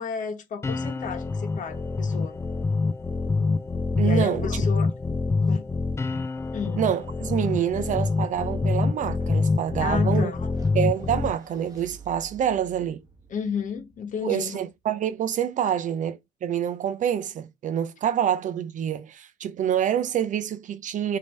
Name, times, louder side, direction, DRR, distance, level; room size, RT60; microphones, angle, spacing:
voice 1, 0.0-2.4 4.0-4.9 5.4-5.6 6.5-6.8 9.8-10.5 13.3-14.6, left 6 dB, 50° left, 1.2 m, -32 dB
sound 1, 0.6-11.3, left 3 dB, 15° left, 0.4 m, -26 dB
voice 2, 4.0-4.6 6.8-10.3 10.7-13.0 14.2-21.2, right 9 dB, 50° right, 0.5 m, -27 dB
sound 2, 10.5-14.9, right 5 dB, 20° right, 1.3 m, -51 dB
5.0 x 2.8 x 3.3 m
cardioid pair, 110°, 17 cm